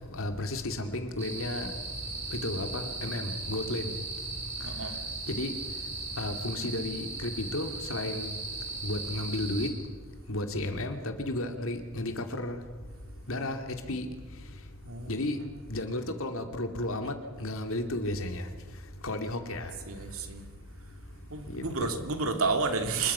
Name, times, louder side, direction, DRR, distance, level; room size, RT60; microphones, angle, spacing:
voice 1, 0.1-1.7 2.3-3.9 5.3-5.5 6.2-8.3 8.8-9.7 10.3-12.6 13.3-14.1 15.1-15.4 15.7-18.4 19.0-19.7 21.5-22.1, left 1 dB, 70° left, 6 dB, 2.7 m, -33 dB
sound 1, 1.2-9.7, right 3 dB, 30° right, 5.4 m, -37 dB
voice 2, 4.6-5.0 14.8-15.6 19.9-20.5 21.3-23.1, right 4 dB, 75° right, 6 dB, 2.6 m, -31 dB
26.0 x 22.0 x 5.8 m, 1.5 s
head